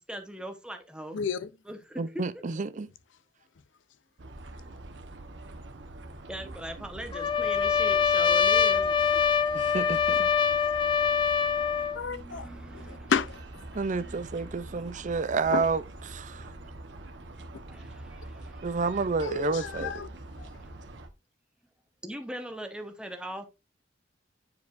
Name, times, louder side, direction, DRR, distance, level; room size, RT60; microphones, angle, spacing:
voice 1, 0.1-1.2 1.6-2.6 6.3-8.9 11.5-13.1 13.7-15.5 16.3-18.7 20.5-20.7 22.0-23.5, equal, 5° right, 1.0 m, -42 dB
voice 2, 1.1-1.5 11.9-12.5 12.7-13.6 15.5-15.6 19.2-20.1 20.4-20.5, left 6 dB, 85° left, 0.5 m, -31 dB
voice 3, 2.0-2.9 9.5-10.3 13.7-16.5 18.6-19.9, right 4 dB, 45° right, 0.5 m, -30 dB
sound 1, 4.2-21.1, right 2 dB, 75° right, 1.0 m, -44 dB
Trumpet, 7.1-12.0, left 7 dB, 25° left, 0.3 m, -24 dB
9.5 x 4.7 x 2.5 m
head